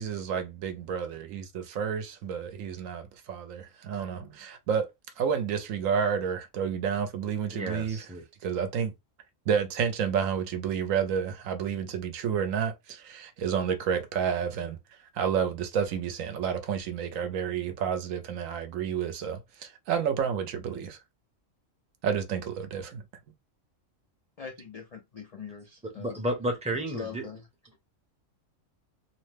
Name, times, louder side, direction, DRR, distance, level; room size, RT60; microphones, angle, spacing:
voice 1, 0.0-4.9 5.2-8.1 8.4-8.9 9.5-14.8 15.1-21.0 22.0-23.0, right 7 dB, 80° right, 1.0 m, -30 dB
voice 2, 7.5-8.2 26.0-27.3, right 1 dB, 5° right, 0.5 m, -32 dB
voice 3, 24.4-26.2 26.9-27.4 27.7-27.8, left 6 dB, 80° left, 0.3 m, -42 dB
2.8 x 2.1 x 3.2 m
omnidirectional pair, 1.4 m